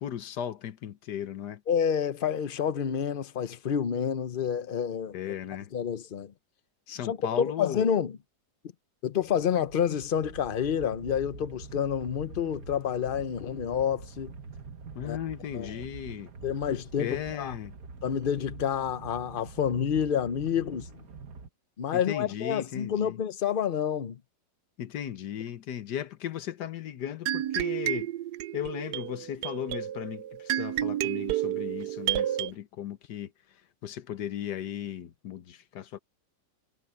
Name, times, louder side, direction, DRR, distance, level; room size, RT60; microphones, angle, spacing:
voice 1, 0.0-1.6 5.1-5.7 6.9-7.8 14.9-16.3 17.0-17.7 21.9-23.2 24.8-28.1 28.5-36.0, left 10 dB, 85° left, 1.5 m, -36 dB
voice 2, 1.7-5.1 5.7-6.3 7.0-7.2 7.6-8.1 9.0-14.3 15.0-15.2 15.5-15.7 16.4-17.5 18.0-20.9 21.8-24.2, left 8 dB, 45° left, 0.7 m, -29 dB
sound 1, 9.2-21.5, right 4 dB, 60° right, 2.0 m, -45 dB
sound 2, 27.3-32.5, right 12 dB, 85° right, 1.2 m, -31 dB
omnidirectional pair, 1.8 m